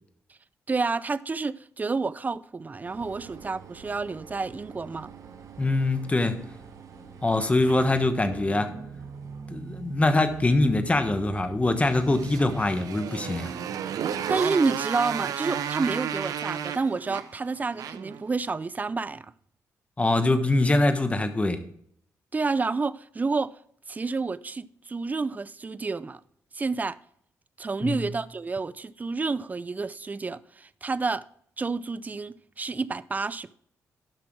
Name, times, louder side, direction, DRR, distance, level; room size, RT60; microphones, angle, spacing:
voice 1, 0.7-5.1 14.3-19.3 22.3-23.5 23.9-26.2 26.5-27.0 27.6-31.3 31.6-33.5, right 4 dB, 25° right, 0.4 m, -29 dB
sound 1, 2.8-12.6, right 6 dB, 65° right, 1.3 m, -44 dB
voice 2, 5.6-6.4 7.2-8.7 9.5-13.5 20.0-21.6 27.8-28.0, left 2 dB, 20° left, 1.3 m, -23 dB
Motorcycle, 11.9-18.2, right 8 dB, 80° right, 0.7 m, -32 dB
12.0 x 6.0 x 4.6 m
cardioid pair, 80°, 6 cm